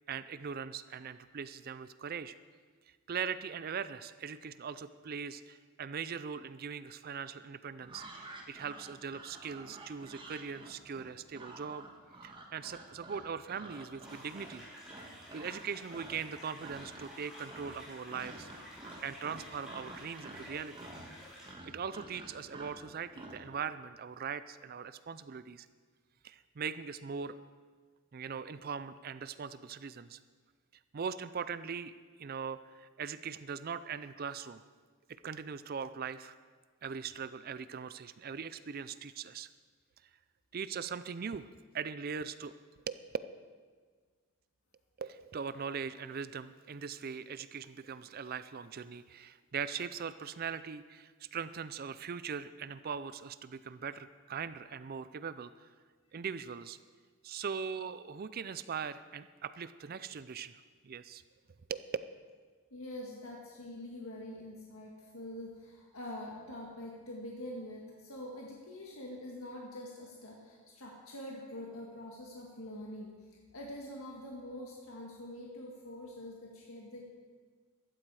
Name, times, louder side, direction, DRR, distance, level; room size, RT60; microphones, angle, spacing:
voice 1, 0.1-2.3 3.1-11.9 12.2-14.7 15.0-18.5 19.0-20.9 21.4-21.5 21.7-25.7 26.2-27.4 28.1-30.2 30.9-31.9 32.2-34.6 35.2-36.3 36.8-39.5 40.5-41.5 41.7-42.5 42.9-43.0 45.0-55.7 56.1-56.8 57.2-60.5 60.8-61.2 61.7-61.8, right 6 dB, 45° right, 14 dB, 0.4 m, -40 dB
sound 1, 7.8-15.6 15.9-16.3 16.6-17.2 17.5-23.4, right 2 dB, 25° right, 1.6 m, -50 dB
sound 2, 14.0-21.5, equal, 5° right, 5.3 m, -52 dB
voice 2, 62.7-73.1 73.5-77.0, left 1 dB, 80° left, -2 dB, 1.8 m, -45 dB
15.5 x 13.0 x 4.8 m, 1.5 s
head